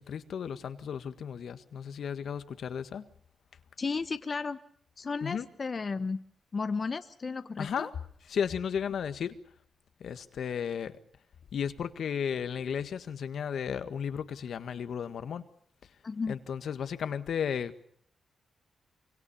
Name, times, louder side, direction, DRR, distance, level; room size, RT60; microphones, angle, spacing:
voice 1, 0.0-3.1 5.2-5.5 7.6-7.9 8.3-9.3 10.0-11.0 11.5-15.4 16.3-17.9, left 7 dB, 75° left, 11 dB, 1.7 m, -34 dB
voice 2, 3.8-4.6 5.0-6.2 6.5-7.9 16.0-16.4, left 4 dB, 45° left, 11 dB, 1.0 m, -33 dB
25.0 x 24.0 x 7.1 m, 0.64 s
cardioid pair, 65°, 0 cm